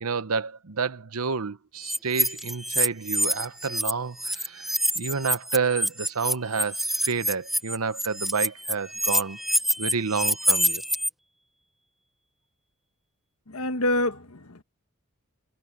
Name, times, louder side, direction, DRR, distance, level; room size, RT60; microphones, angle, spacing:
voice 1, 0.0-9.4 9.8-10.8, right 5 dB, 80° right, 0.9 m, -29 dB
sound 1, 1.8-3.9 4.2-11.1, equal, ahead, 0.8 m, -26 dB
voice 2, 13.5-14.6, left 1 dB, 75° left, 1.5 m, -27 dB
head